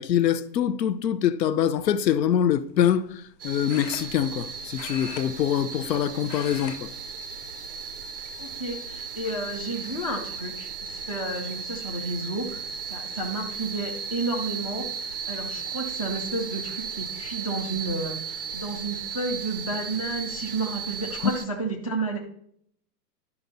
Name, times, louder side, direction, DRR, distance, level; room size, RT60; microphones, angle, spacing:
voice 1, 0.0-6.9 21.2-21.3, left 9 dB, 85° left, 0.8 m, -24 dB
sound 1, 1.7-2.0 3.7-4.5 4.7-5.9 6.2-6.8 7.1-7.3 8.1-8.7 9.2-9.3 10.8-10.9 11.2-11.6, left 8 dB, 45° left, 1.3 m, -41 dB
sound 2, 3.4-21.5, right 6 dB, 40° right, 0.4 m, -36 dB
voice 2, 8.4-22.2, right 2 dB, 25° left, 0.4 m, -31 dB
11.0 x 5.8 x 4.0 m
hypercardioid pair, 170°, 49 cm